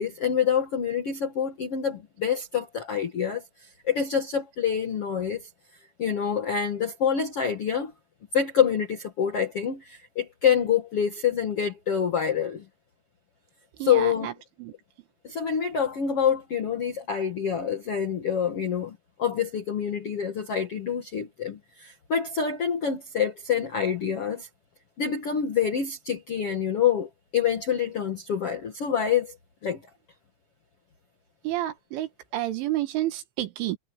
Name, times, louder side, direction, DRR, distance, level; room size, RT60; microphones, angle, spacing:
voice 1, 0.0-3.4 3.8-5.5 6.0-7.9 8.3-12.6 13.8-14.3 15.2-24.5 25.0-29.4 29.6-29.8, left 8 dB, 65° left, 1.4 m, -26 dB
voice 2, 13.8-14.3 14.6-14.7 31.5-33.8, right 14 dB, 85° right, 4.2 m, -30 dB
omnidirectional pair, 5.3 m